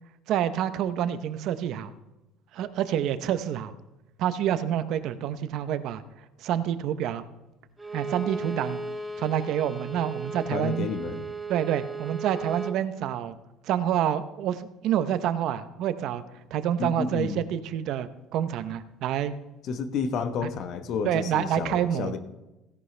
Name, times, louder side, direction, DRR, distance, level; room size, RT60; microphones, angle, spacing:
voice 1, 0.3-1.9 2.5-3.7 4.2-6.0 6.4-7.2 7.9-8.8 9.2-10.9 11.5-13.3 13.6-16.2 16.5-19.3 21.0-22.2, right 10 dB, 55° right, 12 dB, 0.7 m, -27 dB
Bowed string instrument, 7.8-12.8, right 3 dB, 10° right, 0.8 m, -36 dB
voice 2, 10.5-11.2 16.8-17.4 19.6-22.2, left 6 dB, 50° left, 9 dB, 1.1 m, -30 dB
16.5 x 10.5 x 3.3 m, 0.99 s
cardioid pair, 150°, 0 cm